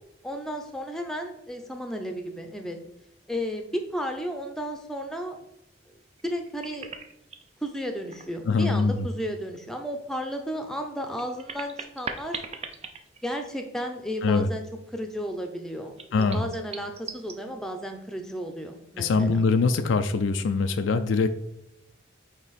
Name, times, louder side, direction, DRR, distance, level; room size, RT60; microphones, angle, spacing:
voice 1, 0.2-2.8 3.3-5.4 6.2-6.9 7.6-12.4 13.2-14.6 14.9-19.4, equal, 5° left, 4 dB, 0.7 m, -33 dB
sound 1, 6.2-7.5 8.0-9.0 9.3-9.4 10.9-13.8 14.1-14.2 16.0-17.4, right 5 dB, 35° right, 0.5 m, -40 dB
voice 2, 8.5-9.1 14.2-14.5 16.1-16.4 19.0-21.3, left 4 dB, 80° left, 8 dB, 0.4 m, -23 dB
8.7 x 2.9 x 4.2 m, 0.82 s
head